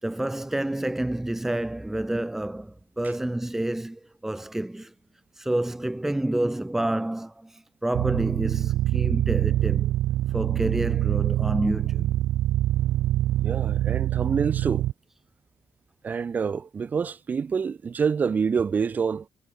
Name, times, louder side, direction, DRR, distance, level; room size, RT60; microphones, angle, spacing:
voice 1, 0.0-4.9 5.4-9.9 10.3-12.1, right 1 dB, 5° right, 4.0 m, -29 dB
sound 1, 7.9-14.9, right 14 dB, 85° right, 2.0 m, -24 dB
voice 2, 13.4-14.9 16.0-19.3, right 6 dB, 30° right, 6.3 m, -27 dB
cardioid pair, 150°, 5 cm